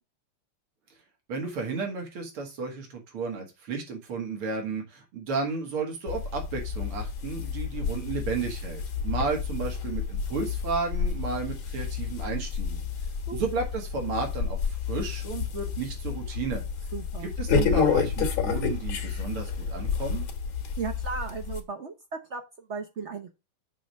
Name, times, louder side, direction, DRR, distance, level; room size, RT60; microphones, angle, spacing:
voice 1, 1.3-12.8 13.3-16.6 17.2-20.3, right 4 dB, 85° right, 2 dB, 2.8 m, -33 dB
sound 1, 6.1-21.6, left 6 dB, 75° left, 2.2 m, -30 dB
voice 2, 16.9-17.3 20.8-21.9 22.3-23.3, right 5 dB, 55° right, 4 dB, 0.8 m, -35 dB
7.6 x 3.5 x 6.3 m, 0.26 s
omnidirectional pair, 2.3 m